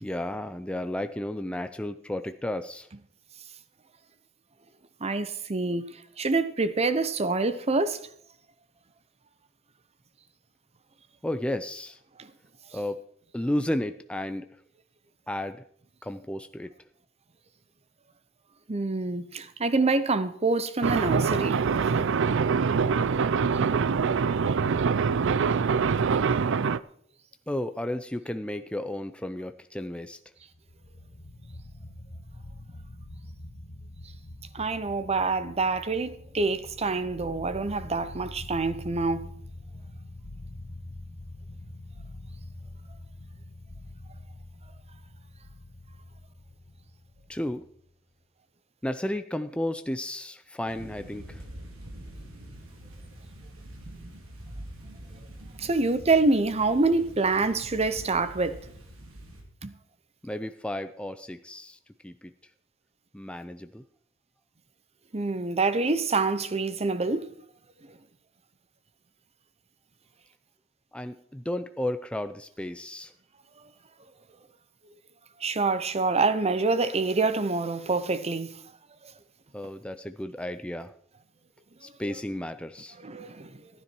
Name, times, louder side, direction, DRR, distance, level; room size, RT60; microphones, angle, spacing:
voice 1, 0.0-2.9 11.2-12.0 12.7-13.0 13.3-14.5 15.3-15.6 16.0-16.7 27.5-30.2 47.3-47.6 48.8-51.4 60.2-62.3 63.1-63.8 70.9-73.1 79.5-80.9 81.8-83.0, left 1 dB, 5° left, 0.5 m, -33 dB
voice 2, 5.0-5.9 6.2-8.0 18.7-21.6 34.5-39.3 55.6-58.6 59.6-59.7 65.1-67.2 75.4-78.5 83.0-83.5, right 3 dB, 30° right, 0.8 m, -26 dB
sound 1, 20.8-26.8, right 5 dB, 65° right, 0.5 m, -24 dB
sound 2, 30.5-47.9, left 1 dB, 50° left, 1.3 m, -45 dB
sound 3, 50.7-59.4, right 1 dB, 85° right, 3.2 m, -45 dB
15.0 x 10.0 x 4.6 m
head